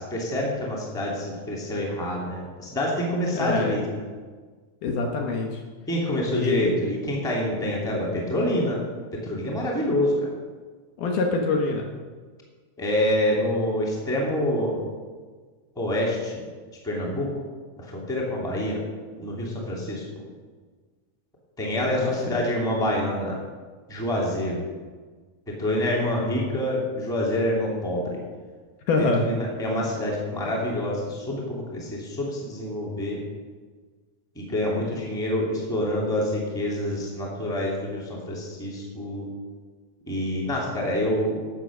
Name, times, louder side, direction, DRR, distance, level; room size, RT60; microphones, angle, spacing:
voice 1, 0.0-4.0 5.9-8.8 9.1-10.3 12.8-14.9 15.8-16.4 16.8-17.4 17.8-18.8 19.2-20.2 21.6-23.4 23.9-24.6 25.6-28.2 29.0-33.2 34.4-39.3 40.1-41.4, left 1 dB, ahead, -3 dB, 1.7 m, -27 dB
voice 2, 3.3-3.8 4.8-5.6 6.3-6.8 11.0-11.9 21.9-22.1 28.9-29.3, left 3 dB, 70° left, 2 dB, 2.3 m, -25 dB
12.5 x 8.0 x 6.1 m, 1.5 s
omnidirectional pair, 4.2 m